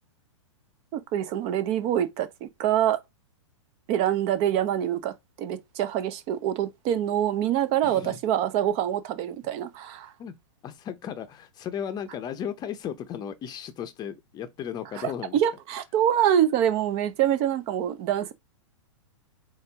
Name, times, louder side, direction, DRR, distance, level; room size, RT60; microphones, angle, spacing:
voice 1, 0.9-3.0 3.9-10.1 15.0-18.3, right 10 dB, 35° right, 0.6 m, -25 dB
voice 2, 7.8-8.2 10.2-10.3 10.6-15.4, left 8 dB, 25° left, 0.6 m, -35 dB
4.3 x 3.4 x 3.4 m
hypercardioid pair, 115°, 16 cm